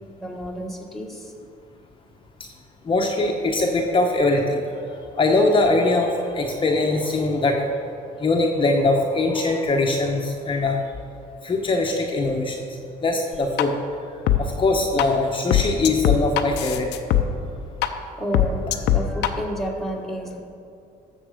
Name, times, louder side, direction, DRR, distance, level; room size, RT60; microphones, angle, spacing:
voice 1, 0.2-1.2 18.2-20.4, equal, ahead, -1 dB, 1.4 m, -30 dB
voice 2, 2.9-4.6 5.2-7.7 8.2-10.8 11.4-12.6 13.0-13.8 14.4-16.9, left 2 dB, 30° left, 1 dB, 1.0 m, -21 dB
sound 1, 13.3-13.6 14.3-14.4 15.0-15.1 15.5-17.2 17.8-17.9 18.3-19.3, left 13 dB, 90° left, 0.7 m, -19 dB
13.0 x 7.2 x 4.9 m, 2.6 s
cardioid pair, 110°, 17 cm